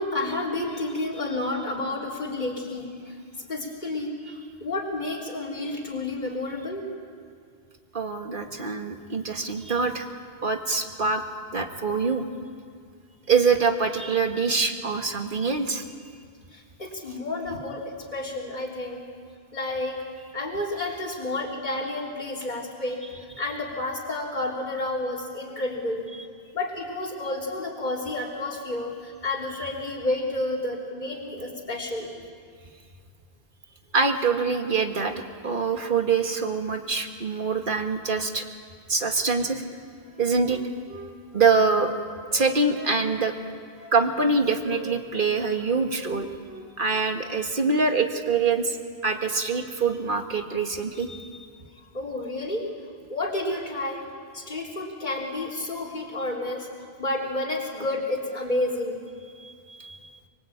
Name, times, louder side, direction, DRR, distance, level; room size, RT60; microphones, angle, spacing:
voice 1, 0.0-6.9 16.5-19.0 19.5-20.0 20.3-23.0 23.4-26.1 26.5-32.1 51.9-52.7 53.1-54.0 54.3-56.7 57.0-59.0, left 2 dB, 45° left, -4 dB, 3.8 m, -30 dB
voice 2, 7.9-10.1 10.4-11.2 11.5-12.2 13.3-15.8 33.9-35.1 35.4-38.4 38.9-39.6 40.2-40.6 41.3-41.9 42.3-43.3 43.9-46.3 46.8-48.8 49.0-51.3 59.4-59.5 59.8-60.0, right 4 dB, 55° right, 5 dB, 2.0 m, -24 dB
Wind instrument woodwind instrument, 40.0-42.0 42.3-43.4 43.7-44.4 44.6-45.3 45.5-45.7 46.0-46.7 46.9-47.1, equal, 85° right, 5.0 m, -43 dB
24.5 x 24.0 x 8.8 m, 2.1 s
omnidirectional pair, 1.1 m